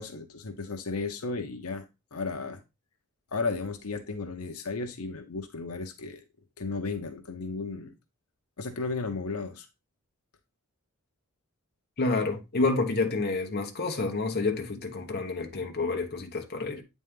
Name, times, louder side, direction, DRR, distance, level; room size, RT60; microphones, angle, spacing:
voice 1, 0.0-2.6 3.3-6.2 6.6-7.9 8.6-9.7, left 4 dB, 80° left, 0.9 m, -34 dB
voice 2, 12.0-16.8, left 3 dB, 45° left, 1.1 m, -29 dB
8.4 x 4.2 x 3.6 m
head